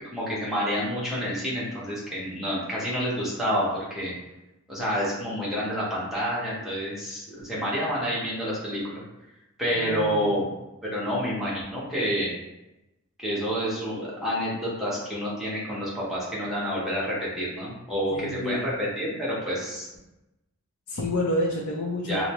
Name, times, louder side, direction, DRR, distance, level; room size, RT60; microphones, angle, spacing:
voice 1, 0.1-4.1 4.7-9.0 9.6-10.4 10.8-12.3 13.2-19.9 22.1-22.3, equal, ahead, -8 dB, 1.0 m, -28 dB
voice 2, 9.8-10.3 18.1-18.7 20.9-22.3, left 1 dB, 85° left, -4 dB, 0.6 m, -29 dB
4.9 x 2.0 x 3.0 m, 0.97 s
head